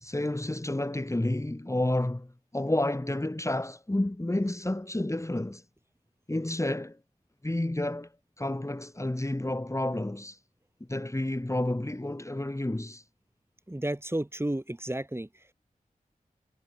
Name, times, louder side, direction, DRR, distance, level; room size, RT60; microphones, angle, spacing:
voice 1, 0.0-5.6 6.3-7.0 7.4-8.1 8.4-10.4 10.9-13.0, left 1 dB, 20° left, 3.3 m, -30 dB
voice 2, 13.7-15.3, right 1 dB, 15° right, 5.8 m, -32 dB
wide cardioid pair, 55°, 15 cm